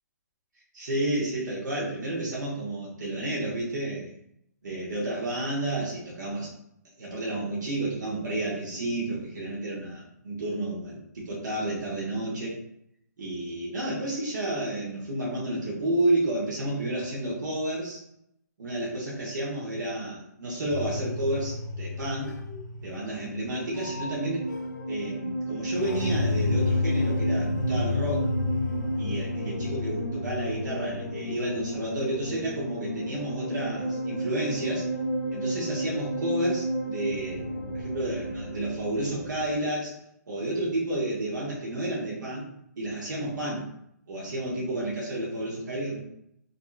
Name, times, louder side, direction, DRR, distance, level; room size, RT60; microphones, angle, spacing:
voice 1, 0.7-4.1 4.6-6.5 7.0-12.6 13.2-18.0 18.6-22.3 22.8-24.4 24.9-28.3 29.0-34.9 35.3-37.4 37.7-39.9 40.3-42.4 42.8-43.7 44.1-46.0, right 1 dB, 75° right, -5 dB, 0.9 m, -31 dB
sound 1, 20.7-39.5, left 1 dB, 75° left, 0.5 m, -31 dB
2.6 x 2.3 x 2.3 m, 0.75 s
hypercardioid pair, 180°, 10 cm